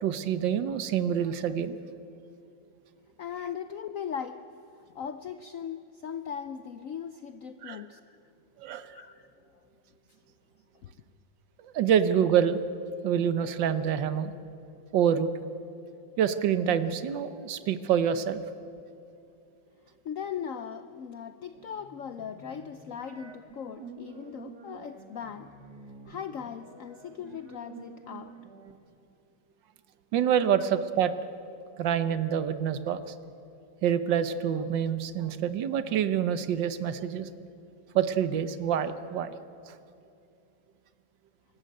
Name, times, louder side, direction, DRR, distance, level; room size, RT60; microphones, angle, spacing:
voice 1, 0.0-1.8 7.6-7.8 8.6-8.9 11.6-12.6 13.0-14.3 14.9-15.3 16.2-18.4 30.1-31.1 31.8-33.0 33.8-37.3 37.9-39.4 39.6-39.7, right 8 dB, 70° right, 12 dB, 1.5 m, -26 dB
voice 2, 3.2-4.5 4.7-8.2 8.9-9.3 10.8-10.9 20.0-25.6 26.1-28.4, left 8 dB, 70° left, 11 dB, 0.7 m, -39 dB
sound 1, 21.5-28.7, right 5 dB, 55° right, 2.1 m, -49 dB
25.0 x 14.0 x 9.1 m, 2.6 s
omnidirectional pair, 2.1 m